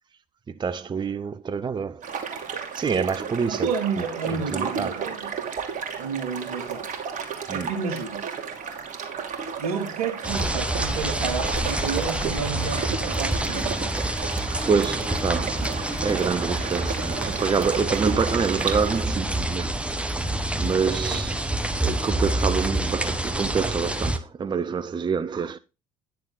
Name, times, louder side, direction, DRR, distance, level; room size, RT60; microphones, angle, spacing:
voice 1, 0.5-2.1 2.7-3.7 4.3-5.0 7.5-7.8 14.3-19.8 20.6-21.4 21.8-25.6, right 6 dB, 25° right, 0.7 m, -27 dB
sound 1, 2.0-19.0, right 6 dB, 40° right, 2.6 m, -33 dB
voice 2, 3.5-5.3 6.0-6.9 7.5-8.2 9.6-13.9 20.9-21.2, right 5 dB, 75° right, 2.2 m, -31 dB
sound 2, 10.2-24.2, right 1 dB, 5° right, 1.3 m, -27 dB
10.5 x 6.8 x 3.9 m
figure-of-eight pair, 60°, 19 cm